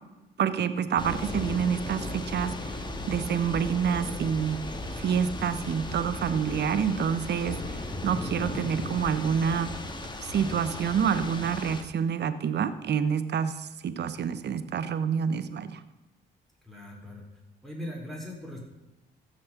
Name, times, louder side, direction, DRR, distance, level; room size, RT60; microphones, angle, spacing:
voice 1, 0.4-4.6 5.0-9.7 10.2-15.8, right 7 dB, 60° right, 12 dB, 1.0 m, -28 dB
Thunder / Rain, 1.0-11.8, left 2 dB, 20° left, 1.8 m, -36 dB
voice 2, 16.6-17.2 17.6-18.6, left 1 dB, ahead, -2 dB, 4.7 m, -39 dB
15.5 x 6.4 x 5.9 m, 1.1 s
cardioid pair, 90°, 20 cm